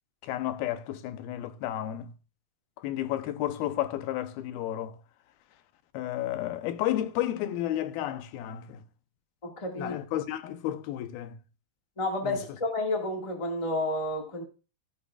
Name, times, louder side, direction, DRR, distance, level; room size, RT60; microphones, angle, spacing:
voice 1, 0.2-2.1 2.8-5.0 5.9-8.8 9.8-11.4 12.2-12.4, left 13 dB, 85° left, 2.7 m, -32 dB
voice 2, 9.4-9.9 12.0-14.4, left 2 dB, 25° left, 0.6 m, -30 dB
14.0 x 9.7 x 2.4 m
omnidirectional pair, 4.3 m